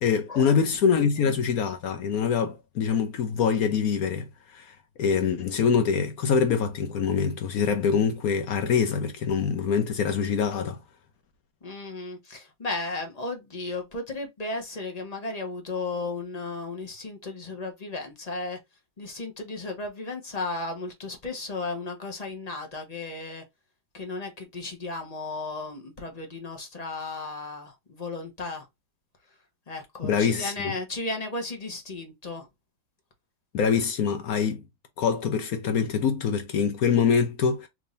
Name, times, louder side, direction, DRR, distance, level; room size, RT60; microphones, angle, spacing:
voice 1, 0.0-10.8 30.0-30.7 33.5-34.6 35.0-37.7, left 6 dB, 65° left, 1.0 m, -24 dB
voice 2, 1.0-1.3 11.6-18.6 19.0-23.4 23.9-28.7 29.7-32.5, left 3 dB, 30° left, 0.9 m, -35 dB
3.5 x 3.1 x 2.6 m
omnidirectional pair, 1.9 m